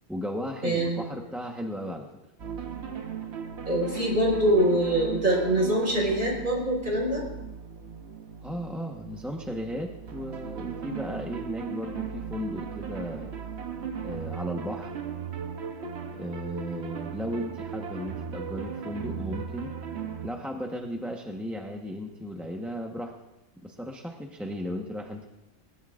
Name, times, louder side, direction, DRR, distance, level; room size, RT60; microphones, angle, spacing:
voice 1, 0.1-2.1 8.4-13.3 14.0-14.9 16.1-19.7 20.2-23.1 23.6-25.3, equal, ahead, 0 dB, 1.0 m, -35 dB
voice 2, 0.6-1.0 3.7-7.2, right 1 dB, 35° right, -2 dB, 5.1 m, -24 dB
sound 1, 2.4-20.3, right 7 dB, 55° right, 1.2 m, -37 dB
21.0 x 18.0 x 2.5 m, 0.94 s
omnidirectional pair, 1.5 m